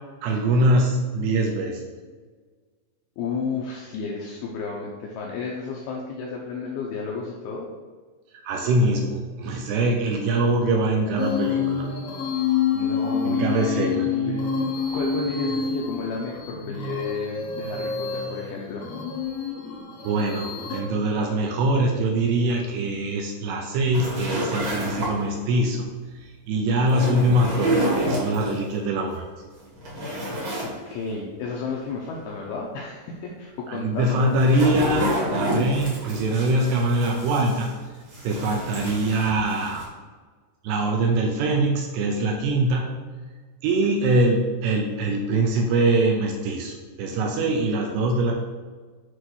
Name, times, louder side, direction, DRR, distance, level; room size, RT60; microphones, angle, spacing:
voice 1, 0.2-1.8 8.4-11.9 13.3-14.0 20.0-25.9 26.2-29.2 33.7-35.1 35.3-37.7 38.2-39.8 40.6-42.9 43.6-48.3, right 2 dB, 80° right, 1 dB, 2.5 m, -23 dB
voice 2, 3.2-7.7 12.7-14.5 14.9-18.8 30.6-34.3, left 4 dB, 80° left, -2 dB, 2.2 m, -32 dB
sound 1, 11.2-20.8, left 6 dB, 60° left, 1.8 m, -28 dB
sound 2, 23.9-25.4 26.8-28.6 29.1-29.2 29.6-30.7 31.1-31.2 34.0-37.8 38.1-39.8, equal, 45° right, 1.7 m, -29 dB
8.1 x 3.1 x 6.1 m, 1.4 s
omnidirectional pair, 5.3 m